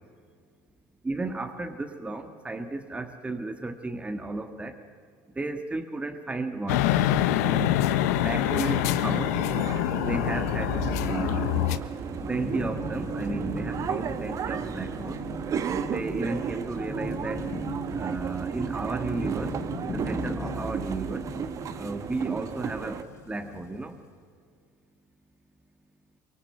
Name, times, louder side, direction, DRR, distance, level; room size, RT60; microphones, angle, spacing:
voice 1, 1.0-4.7 5.3-6.9 7.4-7.7 8.2-9.3 10.0-11.5 12.3-15.2 15.9-17.5 18.0-19.6 19.8-21.2 21.8-23.9, right 2 dB, 15° right, 5 dB, 1.7 m, -33 dB
sound 1, 6.7-11.8, left 12 dB, 80° left, 1.1 m, -25 dB
sound 2, 8.4-23.0, right 7 dB, 40° right, 1.4 m, -33 dB
Thunderstorm / Rain, 11.8-24.0, left 4 dB, 40° left, 5.9 m, -40 dB
24.0 x 23.5 x 7.9 m, 2.1 s
supercardioid pair, 95°, 8 cm